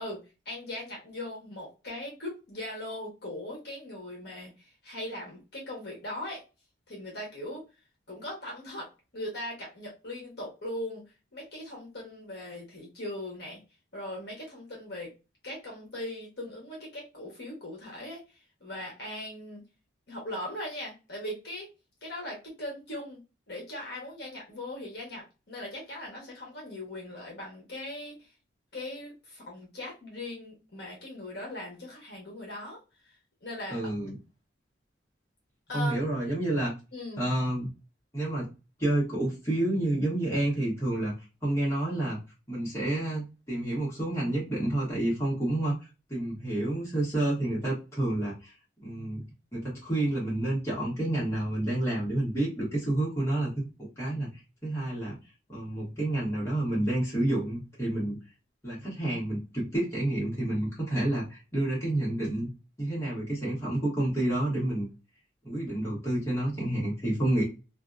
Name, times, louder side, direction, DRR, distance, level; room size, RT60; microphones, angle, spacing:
voice 1, 0.0-6.4 6.9-7.7 8.1-11.0 11.3-13.6 13.9-15.1 15.4-19.6 20.1-21.7 22.0-23.2 23.5-28.3 28.7-33.1 33.4-33.8 35.7-35.9 36.9-37.2, left 1 dB, 55° left, -2 dB, 1.1 m, -39 dB
voice 2, 33.7-34.1 35.7-36.8 37.2-37.7 38.1-38.5 38.8-41.1 41.4-42.2 42.5-45.7 46.1-48.5 48.8-49.2 49.5-53.5 53.8-55.2 55.5-58.2 58.6-62.5 62.8-64.9 65.4-67.4, right 1 dB, 15° left, -7 dB, 1.4 m, -29 dB
2.7 x 2.6 x 2.3 m, 0.28 s
head